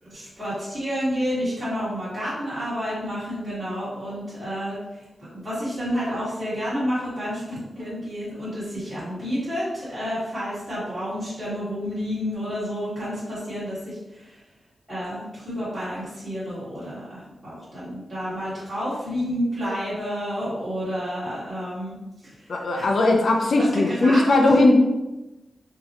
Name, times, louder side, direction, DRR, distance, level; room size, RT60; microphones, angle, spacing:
voice 1, 0.0-7.4 7.7-14.4 14.9-22.0 22.2-22.8 23.6-24.5, equal, 25° right, -12 dB, 1.5 m, -30 dB
voice 2, 22.5-24.7, left 2 dB, 60° left, 2 dB, 0.5 m, -18 dB
3.8 x 2.8 x 2.9 m, 1.0 s
wide cardioid pair, 145°, 0 cm